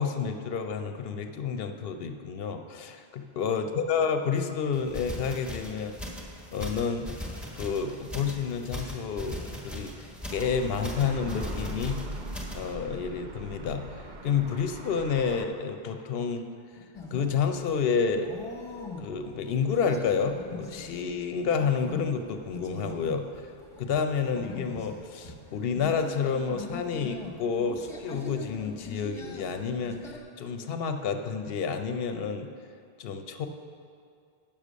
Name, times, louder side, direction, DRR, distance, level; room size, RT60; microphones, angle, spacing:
voice 1, 0.0-5.9 6.5-7.1 7.6-9.9 10.3-12.0 12.5-16.4 16.7-18.3 19.0-23.2 23.8-32.5 33.0-33.5, left 6 dB, 65° left, 7 dB, 0.9 m, -29 dB
sound 1, 4.7-12.7, left 1 dB, ahead, 1.3 m, -40 dB
sound 2, 10.3-15.5, right 1 dB, 50° right, 0.7 m, -40 dB
sound 3, 16.9-30.2, left 3 dB, 30° left, 1.1 m, -43 dB
9.0 x 6.8 x 6.2 m, 2.4 s
omnidirectional pair, 1.1 m